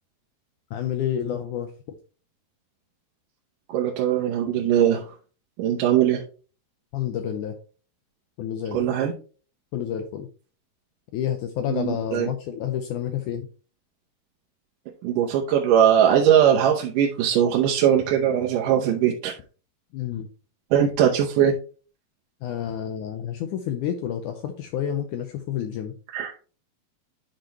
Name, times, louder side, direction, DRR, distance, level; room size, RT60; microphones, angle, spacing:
voice 1, 0.7-1.7 6.9-7.5 8.4-8.8 9.7-10.3 11.1-13.5 19.9-20.3 22.4-25.9, left 9 dB, 80° left, 7 dB, 1.8 m, -29 dB
voice 2, 3.7-5.0 5.6-6.2 8.7-9.1 11.7-12.3 15.0-19.3 20.7-21.5 26.1-26.3, right 9 dB, 70° right, 0 dB, 2.3 m, -20 dB
10.5 x 5.2 x 2.9 m, 0.37 s
omnidirectional pair, 4.3 m